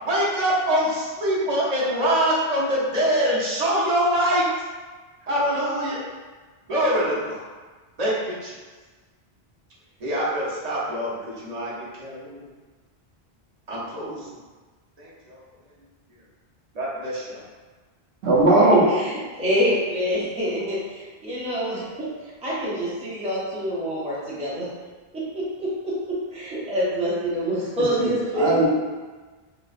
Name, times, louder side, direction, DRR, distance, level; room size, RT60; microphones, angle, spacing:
voice 1, 0.0-4.4 5.2-6.0 6.7-7.4 8.0-8.5 10.0-12.5 13.7-14.3 16.7-17.4, equal, 40° right, -7 dB, 0.9 m, -24 dB
voice 2, 18.2-18.8 28.0-28.7, right 2 dB, 75° right, -6 dB, 1.0 m, -18 dB
voice 3, 18.9-22.1 22.4-24.7 25.1-28.7, equal, 10° right, -7 dB, 0.6 m, -26 dB
3.2 x 3.1 x 2.4 m, 1.3 s
omnidirectional pair, 1.1 m